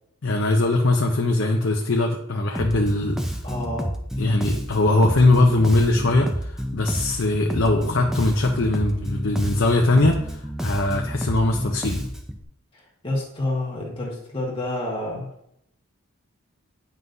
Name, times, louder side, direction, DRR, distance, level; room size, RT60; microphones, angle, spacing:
voice 1, 0.2-3.2 4.2-12.0, left 2 dB, 55° left, 1 dB, 0.6 m, -21 dB
Bass guitar, 2.5-12.4, equal, ahead, 0.5 m, -30 dB
voice 2, 3.4-3.9 12.7-15.3, left 1 dB, 25° left, -3 dB, 1.8 m, -29 dB
9.3 x 5.6 x 2.7 m, 0.75 s
head